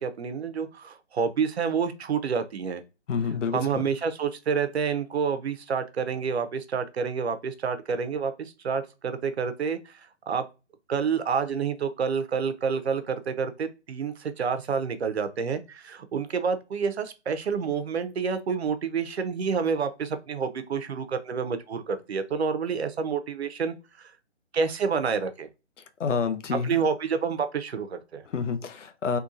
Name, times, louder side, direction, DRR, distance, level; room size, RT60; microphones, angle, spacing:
voice 1, 0.0-2.8 3.5-10.4 10.9-24.1 24.5-25.5 26.6-28.2, right 6 dB, 65° right, 0.6 m, -28 dB
voice 2, 3.1-3.8 26.0-26.8 28.3-29.2, left 5 dB, 85° left, 0.7 m, -28 dB
3.7 x 2.3 x 2.5 m
hypercardioid pair, 170°, 36 cm